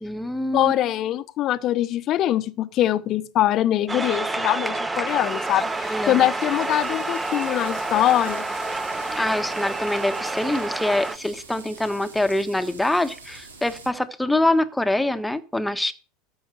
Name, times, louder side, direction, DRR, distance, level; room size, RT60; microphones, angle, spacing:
voice 1, 0.0-0.7 5.9-6.3 9.2-15.9, left 1 dB, 5° left, 1.3 m, -24 dB
voice 2, 0.5-8.5, left 13 dB, 45° left, 0.9 m, -23 dB
sound 1, 3.9-11.2, right 2 dB, 15° right, 0.9 m, -28 dB
sound 2, 5.0-13.9, right 3 dB, 85° right, 2.1 m, -45 dB
13.0 x 5.8 x 7.7 m
hypercardioid pair, 85°, 0 cm